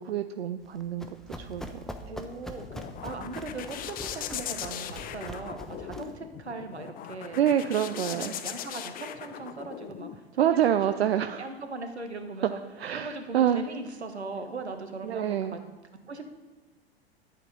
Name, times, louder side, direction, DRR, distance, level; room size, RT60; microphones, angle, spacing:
voice 1, 0.0-1.6 7.3-8.3 10.4-11.5 12.8-13.6 15.0-15.6, right 10 dB, 70° right, 10 dB, 0.6 m, -27 dB
Run, 0.6-6.2, equal, ahead, 1.0 m, -43 dB
voice 2, 2.1-2.7 3.0-7.4 7.8-10.7 11.0-12.6 12.9-15.6 16.1-16.3, right 3 dB, 85° right, 7 dB, 1.5 m, -39 dB
sound 1, 2.3-10.2, left 10 dB, 25° left, 0.7 m, -39 dB
11.5 x 8.2 x 5.4 m, 1.2 s
figure-of-eight pair, 95°, 32 cm